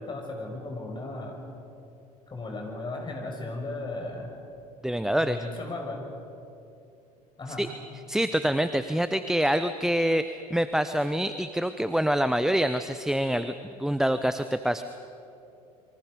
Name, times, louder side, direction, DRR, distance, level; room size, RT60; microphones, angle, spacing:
voice 1, 0.0-1.5 2.3-4.3 5.2-6.0 7.4-7.7, left 2 dB, 25° left, 1 dB, 6.3 m, -36 dB
voice 2, 4.8-5.4 7.6-7.7 8.1-14.8, equal, ahead, 11 dB, 0.7 m, -26 dB
28.5 x 24.0 x 5.3 m, 2.7 s
figure-of-eight pair, 70°, 20 cm